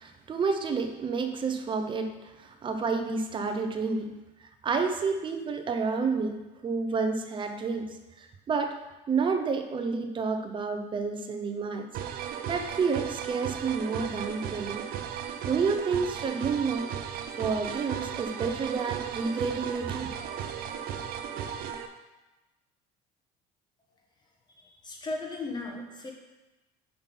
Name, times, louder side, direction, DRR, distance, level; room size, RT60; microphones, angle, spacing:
voice 1, 0.0-4.1 4.6-8.8 9.1-11.9 12.2-14.9 15.4-16.9 17.4-20.1, right 5 dB, 30° right, 6 dB, 0.7 m, -30 dB
sound 1, 11.9-21.9, right 8 dB, 60° right, 0.7 m, -36 dB
voice 2, 24.8-26.1, left 2 dB, 25° left, 1 dB, 1.4 m, -35 dB
5.7 x 5.6 x 5.3 m, 1.1 s
cardioid pair, 135°, 18 cm